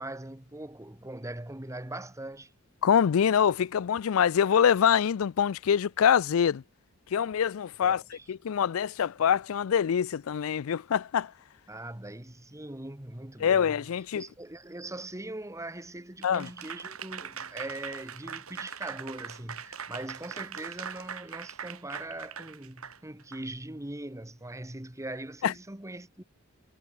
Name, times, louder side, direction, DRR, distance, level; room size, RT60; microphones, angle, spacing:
voice 1, 0.0-2.5 7.8-8.2 11.7-13.8 14.1-26.2, right 1 dB, 15° right, 1.4 m, -41 dB
voice 2, 2.8-6.6 7.1-8.0 8.3-11.3 13.4-14.2 16.2-16.5 25.4-25.5, left 8 dB, 70° left, 0.4 m, -25 dB
Applause / Crowd, 16.2-23.4, right 7 dB, 85° right, 6.6 m, -41 dB
head